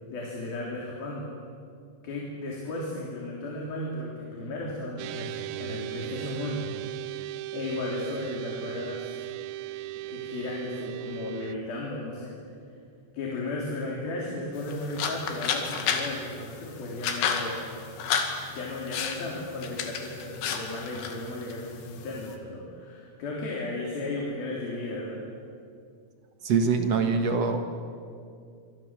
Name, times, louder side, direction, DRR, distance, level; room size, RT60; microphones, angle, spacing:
voice 1, 0.1-1.3 2.0-6.7 7.5-9.2 10.0-12.3 13.1-17.7 18.5-25.2, left 2 dB, 55° left, -3 dB, 5.2 m, -35 dB
sound 1, 5.0-11.6, right 16 dB, 90° right, 2.1 m, -37 dB
sound 2, 14.5-22.4, left 6 dB, 80° left, 4.5 m, -33 dB
voice 2, 26.4-27.6, right 5 dB, 60° right, 5 dB, 1.7 m, -24 dB
26.5 x 26.0 x 7.6 m, 2.3 s
omnidirectional pair, 5.2 m